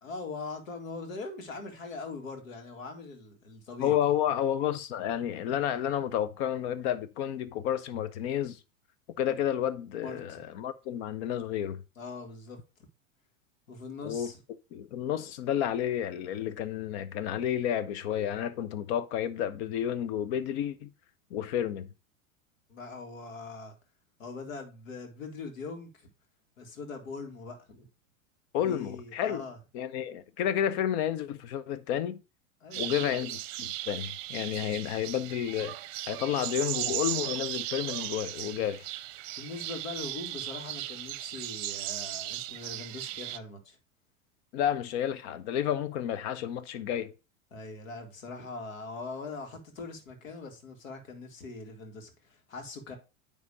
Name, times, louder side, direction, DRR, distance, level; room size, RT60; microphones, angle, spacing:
voice 1, 0.0-3.9 10.0-10.4 12.0-12.6 13.7-14.4 22.7-23.7 24.2-26.1 26.6-27.9 28.6-29.6 32.6-33.3 39.4-43.8 47.5-53.0, left 3 dB, 75° left, 2.2 m, -42 dB
voice 2, 3.8-8.6 9.2-11.8 14.0-14.3 14.7-20.9 21.3-21.9 28.5-29.4 29.7-32.2 32.8-35.7 36.1-38.9 44.5-47.1, left 10 dB, 55° left, 1.0 m, -31 dB
sound 1, 32.7-43.4, right 15 dB, 45° right, 0.7 m, -37 dB
9.6 x 3.4 x 4.7 m
hypercardioid pair, 95°, 40 cm